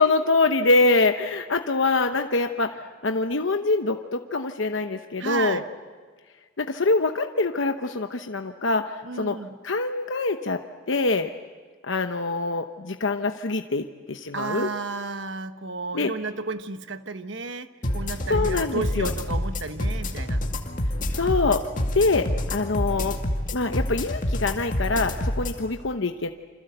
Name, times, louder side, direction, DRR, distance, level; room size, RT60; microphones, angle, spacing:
voice 1, 0.0-5.6 6.6-9.4 9.6-10.6 10.9-11.3 11.8-14.7 15.9-16.1 18.3-19.1 21.1-21.6 21.9-23.2 23.5-26.3, left 3 dB, 65° left, 6 dB, 0.9 m, -24 dB
voice 2, 5.2-5.6 9.0-9.6 14.3-20.4, right 3 dB, 65° right, 10 dB, 1.2 m, -32 dB
sound 1, 17.8-25.6, left 1 dB, 40° left, 2.2 m, -27 dB
28.0 x 26.5 x 8.0 m, 1.5 s
head